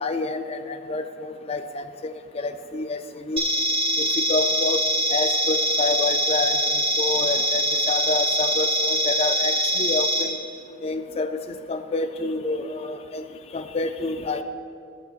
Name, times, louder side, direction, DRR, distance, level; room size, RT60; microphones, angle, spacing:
voice 1, 0.0-3.5 4.0-4.8 5.1-6.6 7.0-10.4 10.8-13.2 13.5-14.4, left 3 dB, 30° left, 8 dB, 0.4 m, -28 dB
sound 1, 3.4-10.2, equal, 30° right, 1.1 m, -23 dB
15.5 x 6.7 x 2.5 m, 2.4 s
head